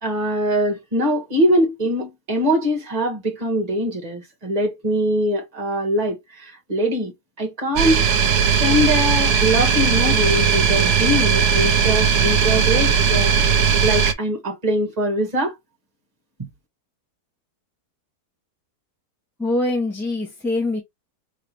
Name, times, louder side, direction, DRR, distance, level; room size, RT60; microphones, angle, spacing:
voice 1, 0.0-7.1 7.4-8.0 8.4-15.5 16.4-16.5, equal, 25° right, 1.8 m, -22 dB
sound 1, 7.8-14.1, right 6 dB, 80° right, 1.2 m, -18 dB
voice 2, 19.4-20.8, left 2 dB, ahead, 1.5 m, -23 dB
4.7 x 3.4 x 3.2 m
omnidirectional pair, 1.7 m